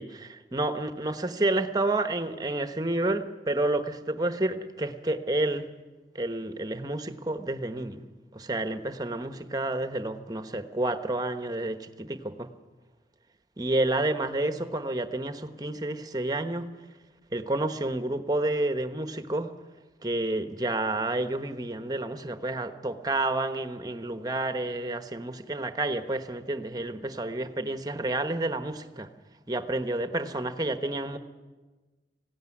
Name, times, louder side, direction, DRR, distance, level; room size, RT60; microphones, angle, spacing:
voice 1, 0.0-5.7 6.1-8.0 8.3-12.5 13.6-16.7 17.3-19.5 20.0-29.1 29.5-31.2, right 2 dB, 20° right, 9 dB, 1.1 m, -30 dB
20.0 x 16.0 x 9.9 m, 1.3 s
head